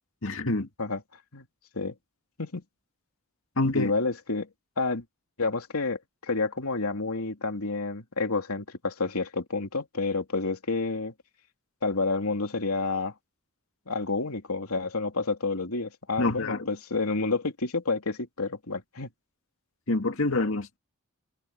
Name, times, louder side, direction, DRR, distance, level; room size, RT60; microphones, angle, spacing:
voice 1, 0.2-0.7 3.6-3.9 16.2-16.7 19.9-20.8, left 2 dB, 65° left, 2.2 m, -26 dB
voice 2, 3.7-4.5 4.8-5.0 5.4-11.1 11.8-13.1 13.9-19.1, left 3 dB, 85° left, 3.0 m, -29 dB
head